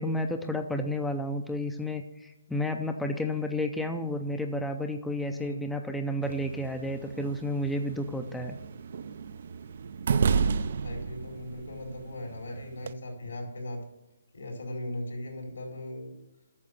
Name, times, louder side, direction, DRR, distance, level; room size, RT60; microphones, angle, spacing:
voice 1, 0.0-8.6, left 1 dB, 5° left, 5 dB, 0.5 m, -31 dB
voice 2, 5.3-5.6 10.8-13.8 14.3-16.1, left 1 dB, 85° left, 1 dB, 4.3 m, -38 dB
sound 1, 6.2-12.9, right 5 dB, 50° right, 0.4 m, -32 dB
8.6 x 6.6 x 6.6 m, 1.0 s
hypercardioid pair, 165°, 0 cm